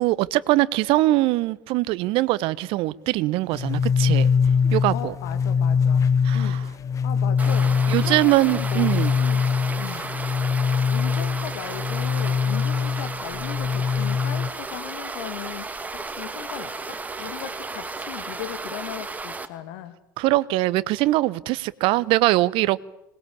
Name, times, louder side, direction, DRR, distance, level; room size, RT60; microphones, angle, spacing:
voice 1, 0.0-4.3 4.7-5.1 6.2-6.6 7.9-9.1 20.2-22.8, right 18 dB, 55° right, 1.1 m, -22 dB
sound 1, 3.5-14.5, left 6 dB, 30° left, 1.4 m, -23 dB
voice 2, 4.9-6.1 6.3-9.4 9.8-10.1 10.9-15.7 16.0-20.0, left 13 dB, 65° left, 2.0 m, -37 dB
sound 2, 7.4-19.5, right 3 dB, 15° right, 2.5 m, -34 dB
26.0 x 20.5 x 8.6 m
hypercardioid pair, 80°, 11 cm